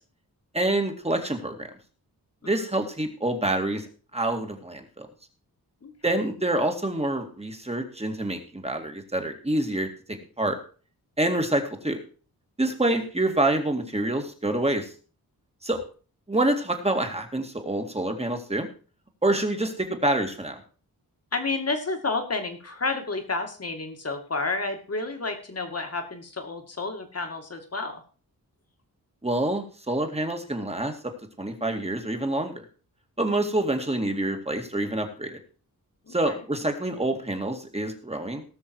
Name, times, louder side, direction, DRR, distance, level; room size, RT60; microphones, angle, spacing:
voice 1, 0.5-1.7 2.4-3.8 4.1-5.1 6.0-10.6 11.2-12.0 12.6-14.9 15.6-15.8 16.3-18.7 19.2-20.6 29.2-30.9 31.4-32.6 33.2-35.4 36.1-38.4, right 1 dB, 15° right, 5 dB, 2.2 m, -27 dB
voice 2, 21.3-28.0 36.1-36.4, left 3 dB, 40° left, 6 dB, 2.3 m, -30 dB
18.5 x 6.3 x 4.7 m, 0.39 s
wide cardioid pair, 95°, 37 cm